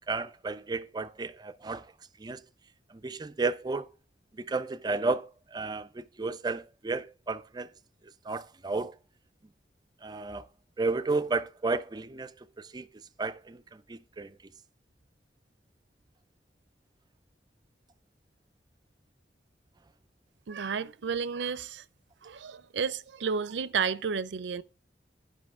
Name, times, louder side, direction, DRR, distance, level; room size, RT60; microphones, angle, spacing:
voice 1, 0.1-1.9 2.2-2.4 2.9-3.9 4.3-7.7 8.2-8.9 10.0-10.5 10.8-12.9 13.2-14.4, right 3 dB, 25° right, 0.4 m, -33 dB
voice 2, 20.5-21.8 22.2-24.6, right 6 dB, 90° right, 0.5 m, -32 dB
11.5 x 5.6 x 3.6 m
head